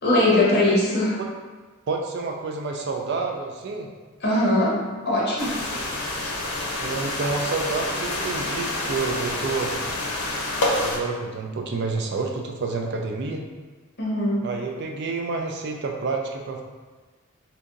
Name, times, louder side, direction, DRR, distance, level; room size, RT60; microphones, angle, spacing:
voice 1, 0.0-1.2 4.2-5.6 14.0-14.5, left 1 dB, 50° left, -6 dB, 1.0 m, -21 dB
voice 2, 1.9-3.9 6.8-9.7 10.8-13.4 14.4-16.6, right 4 dB, 50° right, 2 dB, 0.4 m, -29 dB
sound 1, 5.4-11.0, left 2 dB, 85° left, 0.6 m, -28 dB
2.8 x 2.5 x 3.7 m, 1.3 s
head